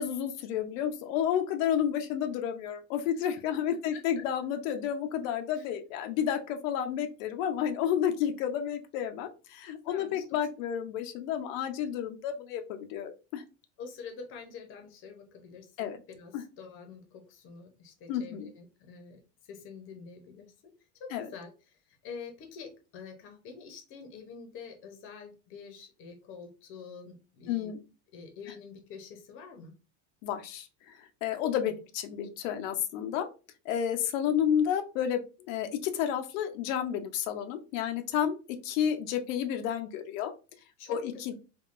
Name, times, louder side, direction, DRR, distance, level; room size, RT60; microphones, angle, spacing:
voice 1, 0.0-13.4 15.8-16.0 16.3-16.4 18.1-18.5 21.1-21.3 27.5-27.8 30.2-33.3 33.6-40.3 40.9-41.3, left 9 dB, 90° left, 6 dB, 0.6 m, -31 dB
voice 2, 3.9-4.2 5.5-5.7 9.9-10.2 13.8-20.5 21.0-27.7 28.1-29.7 40.8-41.3, left 5 dB, 35° left, 4 dB, 0.6 m, -47 dB
3.5 x 2.2 x 2.4 m, 0.32 s
cardioid pair, 165°, 38 cm